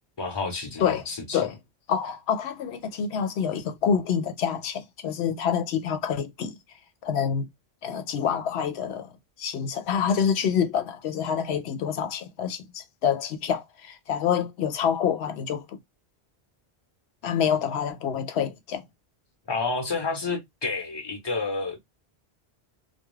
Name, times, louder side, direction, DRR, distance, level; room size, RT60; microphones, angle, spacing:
voice 1, 0.2-1.4 19.5-21.8, left 4 dB, 25° left, 0.7 m, -30 dB
voice 2, 1.9-6.6 7.0-7.5 7.8-9.1 9.4-15.8 17.2-18.8, left 7 dB, 80° left, 0.8 m, -27 dB
2.3 x 2.2 x 3.0 m
omnidirectional pair, 1.1 m